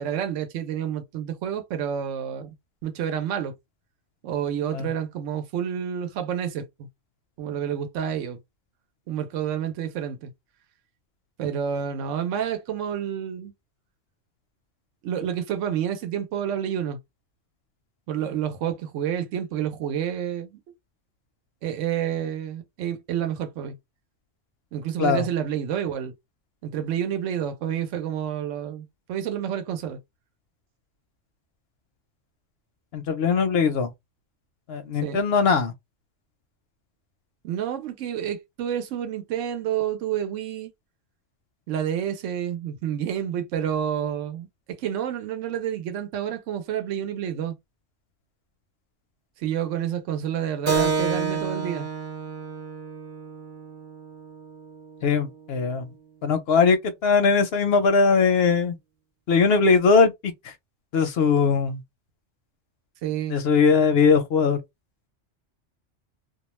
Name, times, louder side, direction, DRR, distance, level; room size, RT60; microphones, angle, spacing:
voice 1, 0.0-2.5 2.8-3.5 4.2-6.9 7.4-8.4 9.1-10.3 11.4-13.5 15.0-17.0 18.1-20.6 21.6-23.8 24.7-26.1 26.6-30.0 35.0-35.2 37.4-40.7 41.7-47.6 49.4-51.9 63.0-63.4, right 9 dB, 80° right, 1.0 m, -29 dB
voice 2, 32.9-33.9 34.7-35.7 55.0-55.9 56.2-58.8 59.3-60.5 60.9-61.8 63.3-64.6, left 5 dB, 65° left, 0.7 m, -20 dB
Keyboard (musical), 50.7-55.7, right 5 dB, 45° right, 0.9 m, -30 dB
2.3 x 2.2 x 3.0 m
omnidirectional pair, 1.3 m